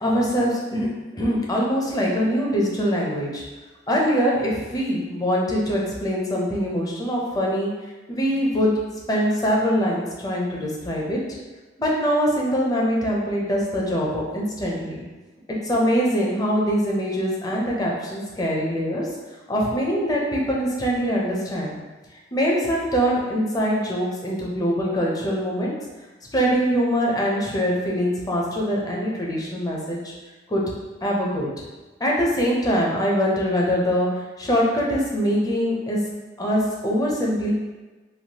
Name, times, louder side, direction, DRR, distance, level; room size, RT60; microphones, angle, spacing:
voice 1, 0.0-3.4 3.9-7.7 8.1-8.7 9.1-11.2 11.8-15.0 15.6-19.1 19.5-21.8 22.3-25.7 26.3-30.0 30.5-30.6 31.0-31.5 32.0-34.1 34.4-36.0 36.4-37.5, equal, 20° left, -3 dB, 0.5 m, -23 dB
3.1 x 2.3 x 2.8 m, 1.2 s
head